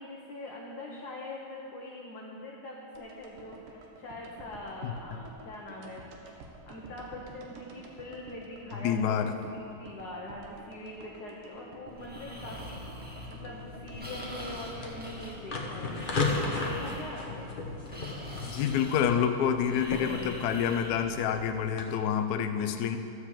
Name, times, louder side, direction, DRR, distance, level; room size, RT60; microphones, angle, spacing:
voice 1, 0.0-6.0 6.5-17.5, left 1 dB, 55° left, -3 dB, 1.4 m, -43 dB
sound 1, 2.9-15.1 15.4-15.5, right 2 dB, 90° right, 1.9 m, -50 dB
voice 2, 8.8-9.5 18.5-23.0, left 8 dB, 75° left, 7 dB, 0.9 m, -28 dB
Breathing, 11.9-21.6, left 1 dB, 5° right, 1.2 m, -43 dB
sound 2, 13.9-21.8, left 3 dB, 40° left, 0.8 m, -36 dB
13.0 x 4.9 x 7.3 m, 2.7 s
omnidirectional pair, 2.3 m